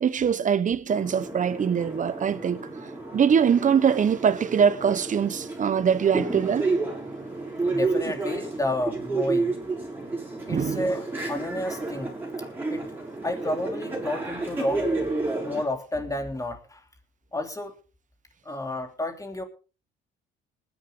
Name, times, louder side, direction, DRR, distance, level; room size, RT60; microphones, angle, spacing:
voice 1, 0.0-2.7 3.1-6.7 10.5-10.9, right 7 dB, 40° right, 1.2 m, -23 dB
sound 1, 0.9-15.6, right 3 dB, 10° right, 6.9 m, -31 dB
voice 2, 7.6-9.6 10.5-12.1 12.7-12.8 13.2-14.9 15.4-16.8 17.3-17.7 18.4-19.4, left 1 dB, 15° left, 3.1 m, -31 dB
20.0 x 10.5 x 3.9 m
cardioid pair, 95°, 21 cm